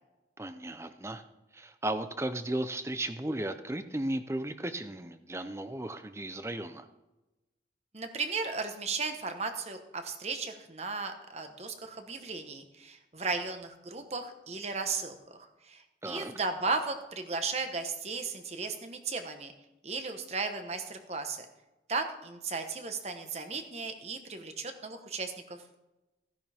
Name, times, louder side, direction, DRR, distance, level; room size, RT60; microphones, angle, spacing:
voice 1, 0.4-1.2 1.5-6.9 16.0-16.3, right 1 dB, 15° right, 10 dB, 0.6 m, -35 dB
voice 2, 7.9-19.5 19.8-21.5 21.9-25.6, right 4 dB, 35° right, 7 dB, 1.2 m, -35 dB
15.5 x 10.5 x 3.5 m, 1.0 s
head